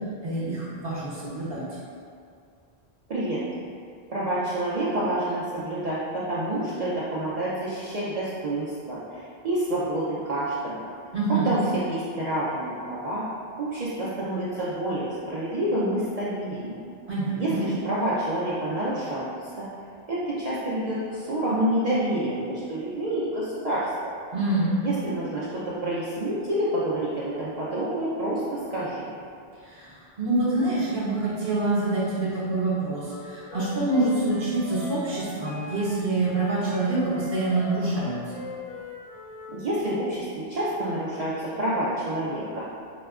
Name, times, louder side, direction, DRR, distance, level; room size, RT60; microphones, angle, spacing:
voice 1, 0.2-1.6 11.1-11.6 17.1-17.6 24.3-24.8 29.6-38.2, right 2 dB, 70° right, -8 dB, 1.0 m, -26 dB
voice 2, 3.1-3.4 4.1-10.9 11.3-11.6 11.9-13.2 13.6-16.8 17.3-19.7 20.1-24.1 24.8-29.1 39.5-42.6, right 1 dB, 50° right, -9 dB, 0.5 m, -28 dB
Wind instrument woodwind instrument, 33.1-39.6, left 4 dB, 50° left, 0.5 m, -41 dB
4.9 x 2.2 x 2.3 m, 2.3 s
omnidirectional pair, 1.0 m